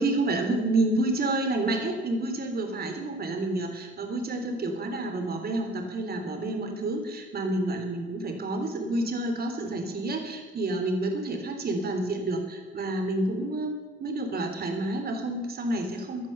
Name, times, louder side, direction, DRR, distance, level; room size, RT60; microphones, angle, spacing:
voice 1, 0.0-16.3, right 2 dB, 50° right, 4 dB, 3.5 m, -29 dB
16.0 x 10.5 x 6.9 m, 1.5 s
cardioid pair, 90°, 20 cm